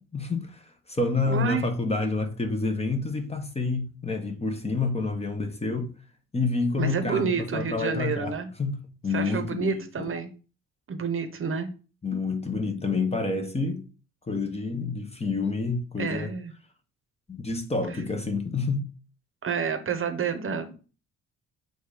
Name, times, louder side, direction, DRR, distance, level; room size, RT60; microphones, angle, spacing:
voice 1, 0.0-5.9 6.3-10.1 12.0-13.8 14.3-16.3 17.3-18.9, left 3 dB, 20° left, 1.2 m, -28 dB
voice 2, 1.3-1.6 6.7-8.5 9.1-10.4 10.9-11.7 16.0-16.5 19.4-20.8, right 6 dB, 45° right, 1.0 m, -29 dB
7.8 x 2.6 x 4.9 m
cardioid pair, 90°, 30 cm